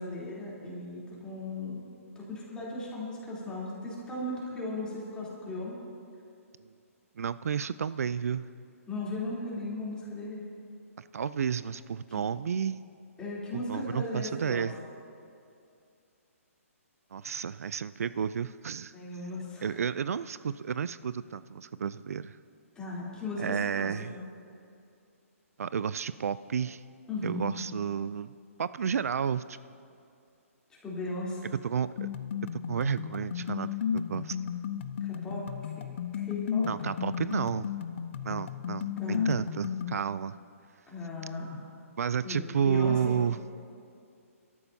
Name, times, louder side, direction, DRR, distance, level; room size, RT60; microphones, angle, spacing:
voice 1, 0.0-1.8 2.1-5.8 8.9-10.4 12.1-12.2 13.2-14.7 18.9-19.8 22.7-24.2 27.1-27.5 30.8-31.4 35.0-35.4 36.1-36.7 39.0-39.3 40.9-41.6 42.2-43.1, left 2 dB, 10° left, -7 dB, 3.3 m, -37 dB
voice 2, 7.2-8.4 11.0-12.8 13.5-14.7 17.1-18.9 19.6-22.4 23.4-24.2 25.6-26.8 27.2-28.3 28.6-29.6 31.6-32.1 32.7-34.4 36.7-37.7 38.2-40.4 42.0-43.4, right 7 dB, 80° right, 16 dB, 0.4 m, -31 dB
sound 1, 32.0-40.0, left 8 dB, 55° left, 0.6 m, -34 dB
25.0 x 13.0 x 2.8 m, 2.4 s
hypercardioid pair, 150°, 8 cm